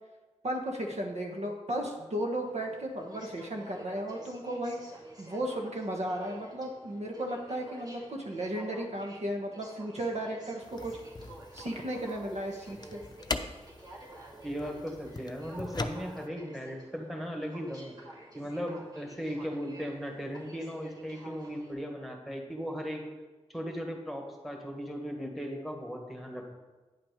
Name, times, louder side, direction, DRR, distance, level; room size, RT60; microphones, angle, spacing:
voice 1, 0.4-4.8 5.2-11.0 11.5-13.0, right 1 dB, 65° right, 1 dB, 1.3 m, -35 dB
Aircraft, 2.3-21.7, right 1 dB, 35° right, 2.3 m, -50 dB
sound 1, 10.6-16.3, left 3 dB, 35° left, 0.6 m, -41 dB
voice 2, 14.4-18.0 18.3-23.1 23.5-26.5, equal, ahead, 2 dB, 1.7 m, -37 dB
9.4 x 5.9 x 5.1 m, 1.2 s
cardioid pair, 60°, 12 cm